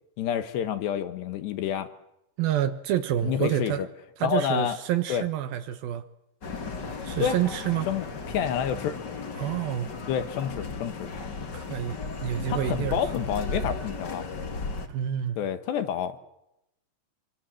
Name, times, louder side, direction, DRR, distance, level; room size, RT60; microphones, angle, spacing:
voice 1, 0.2-1.9 3.2-3.9 4.2-4.8 5.1-5.2 7.2-7.4 7.9-8.9 10.1-11.1 12.5-14.2 15.4-16.2, left 9 dB, 70° left, 3.2 m, -28 dB
voice 2, 2.4-3.9 4.2-6.0 7.0-7.9 9.4-9.9 11.5-13.0 14.9-15.4, right 11 dB, 70° right, 2.3 m, -28 dB
sound 1, 6.4-14.9, left 4 dB, 40° left, 1.5 m, -35 dB
28.0 x 24.5 x 7.7 m
omnidirectional pair, 5.6 m